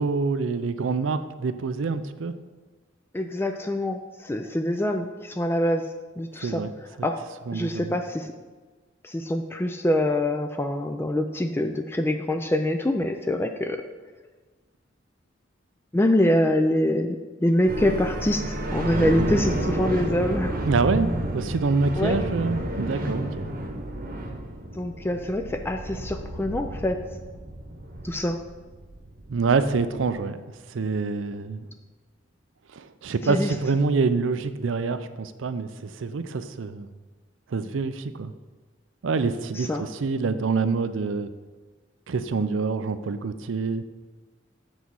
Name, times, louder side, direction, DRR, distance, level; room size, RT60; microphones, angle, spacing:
voice 1, 0.0-2.3 6.4-6.7 7.0-7.1 7.5-7.9 20.6-23.5 29.3-30.4 30.7-31.7 32.7-36.9 37.5-38.3 39.0-41.3 42.1-43.8, right 4 dB, 85° right, 12 dB, 0.5 m, -26 dB
voice 2, 3.1-5.9 6.2-6.6 7.0-7.2 7.5-8.3 9.0-13.8 15.9-20.6 22.0-22.2 24.8-27.0 28.0-28.4 33.2-33.5 39.5-39.8, left 1 dB, 10° left, 6 dB, 0.3 m, -25 dB
sound 1, 17.7-30.1, right 1 dB, 50° right, 1.0 m, -31 dB
8.1 x 4.1 x 6.2 m, 1.3 s
head